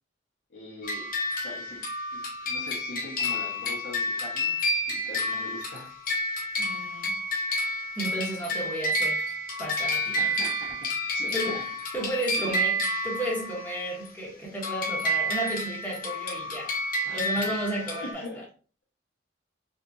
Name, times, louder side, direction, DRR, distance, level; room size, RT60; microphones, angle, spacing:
voice 1, 0.5-1.1 1.4-1.8 2.1-4.5 4.9-5.9 10.1-10.9 11.1-11.6 12.3-12.5 17.0-17.5 18.0-18.4, left 1 dB, 80° left, 1.6 m, -42 dB
sound 1, 0.8-14.1 14.6-18.1, left 1 dB, 50° left, 0.7 m, -30 dB
voice 2, 6.6-7.2 8.0-9.3 9.6-10.2 11.3-16.7 17.1-18.4, right 1 dB, 10° left, 1.2 m, -33 dB
3.6 x 3.4 x 2.7 m
head